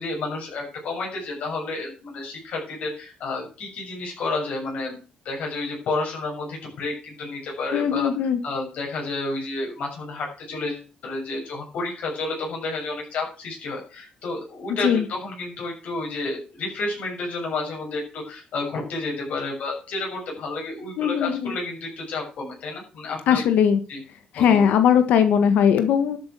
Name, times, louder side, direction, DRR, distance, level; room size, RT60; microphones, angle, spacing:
voice 1, 0.0-23.5 23.9-24.0 24.3-24.7, left 3 dB, 65° left, -1 dB, 7.2 m, -31 dB
voice 2, 7.7-8.4 14.8-15.0 21.0-21.5 23.3-23.8 24.3-26.2, left 8 dB, 80° left, 9 dB, 1.5 m, -19 dB
12.5 x 8.3 x 6.9 m, 0.35 s
cardioid pair, 135°, 3 cm